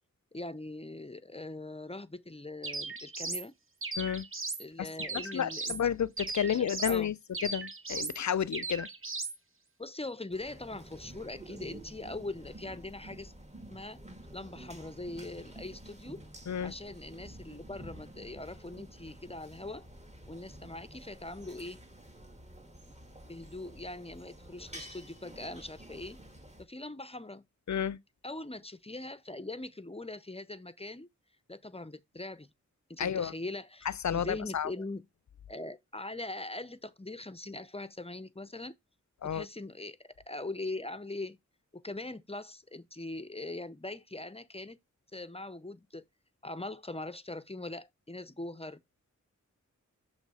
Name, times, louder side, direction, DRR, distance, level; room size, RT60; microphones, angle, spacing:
voice 1, 0.3-3.5 4.6-5.7 6.4-7.1 9.8-13.3 13.7-14.0 14.3-16.2 16.6-19.9 20.3-21.8 23.2-26.2 26.6-27.4 28.2-31.1 31.5-32.5 32.9-35.0 35.5-38.8 39.2-41.4 41.7-44.8 45.1-46.0 46.4-48.8, left 2 dB, 20° left, 0.6 m, -41 dB
sound 1, 2.6-3.5 3.8-4.6 5.0-5.8 6.2-7.0 7.3-8.2 8.5-9.4, right 3 dB, 40° right, 1.2 m, -37 dB
voice 2, 5.3-7.2 7.4-8.9 16.5-16.7 27.7-28.0 33.0-33.3 34.0-34.7 39.2-39.5, left 8 dB, 65° left, 0.6 m, -31 dB
sound 2, 10.3-26.6, right 1 dB, 20° right, 1.9 m, -50 dB
7.4 x 3.2 x 5.5 m
cardioid pair, 50°, 31 cm